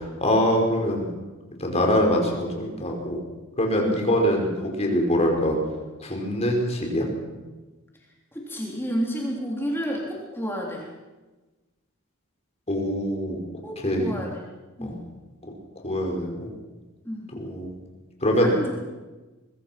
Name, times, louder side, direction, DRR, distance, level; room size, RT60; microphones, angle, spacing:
voice 1, 0.2-1.1 1.6-3.2 3.6-5.6 6.0-7.1 12.7-13.4 13.8-14.1 14.8-14.9 15.8-16.5 17.4-17.7 18.2-18.5, equal, 30° left, 1 dB, 5.5 m, -23 dB
voice 2, 8.3-10.9 13.6-14.4 14.8-15.1 17.1-17.4 18.4-18.7, equal, 10° left, -2 dB, 3.6 m, -30 dB
24.0 x 23.5 x 6.1 m, 1.2 s
head